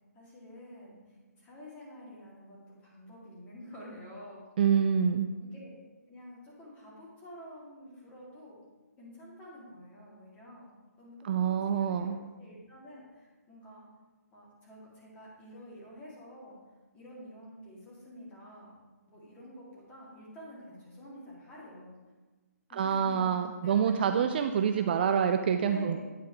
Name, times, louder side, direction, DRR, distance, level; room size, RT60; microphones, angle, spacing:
voice 1, 0.1-4.7 5.4-5.8 6.1-8.6 9.0-10.7 11.0-13.8 14.3-16.6 16.9-18.7 19.1-22.0 22.7-23.3 23.6-25.0 25.7-26.0, equal, 15° left, -5 dB, 2.3 m, -49 dB
voice 2, 4.6-5.3 11.2-12.2 22.7-26.0, right 7 dB, 35° right, 7 dB, 0.3 m, -26 dB
9.4 x 4.6 x 4.6 m, 1.2 s
hypercardioid pair, 155°, 9 cm